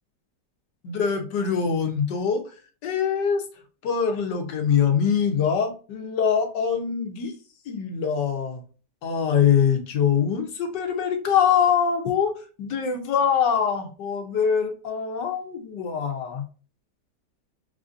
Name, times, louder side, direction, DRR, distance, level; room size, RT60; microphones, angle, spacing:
voice 1, 0.8-2.5 2.8-3.5 3.8-7.3 7.7-8.6 9.0-12.3 12.6-16.4, left 7 dB, 80° left, 1.5 m, -23 dB
4.1 x 2.5 x 2.5 m
omnidirectional pair, 1.8 m